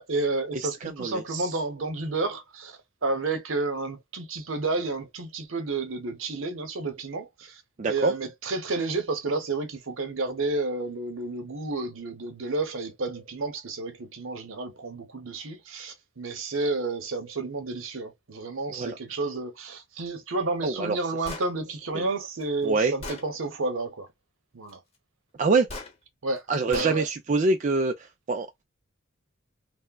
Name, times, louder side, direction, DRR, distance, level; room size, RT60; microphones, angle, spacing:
voice 1, 0.0-7.6 7.9-24.1 24.5-24.8 26.2-27.1, right 3 dB, 75° right, 0.9 m, -31 dB
voice 2, 0.8-1.5 7.8-8.1 18.7-19.0 20.6-21.0 21.9-22.0 22.6-22.9 25.4-25.7 26.5-27.9 28.3-28.6, right 3 dB, 40° right, 0.4 m, -25 dB
Gunshot gunfire, 21.2-21.5 22.4-22.5 23.0-23.3 25.7-25.9 26.7-27.0, left 2 dB, 30° left, 0.9 m, -37 dB
3.4 x 2.1 x 2.3 m
head